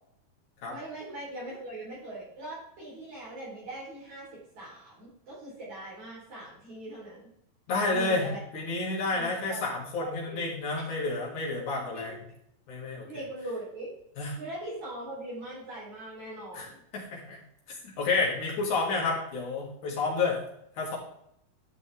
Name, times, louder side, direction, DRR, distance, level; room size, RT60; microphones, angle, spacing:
voice 1, 0.7-7.3 7.9-8.4 9.1-9.6 10.0-10.4 11.9-12.1 13.0-13.9 14.4-16.8, right 1 dB, 50° right, -9 dB, 5.3 m, -41 dB
voice 2, 7.7-8.3 8.5-12.2 12.7-13.0 14.2-14.4 16.5-17.4 17.8-20.4 20.8-21.0, left 3 dB, 55° left, -3 dB, 3.5 m, -30 dB
11.5 x 6.0 x 3.6 m, 0.73 s
omnidirectional pair, 4.4 m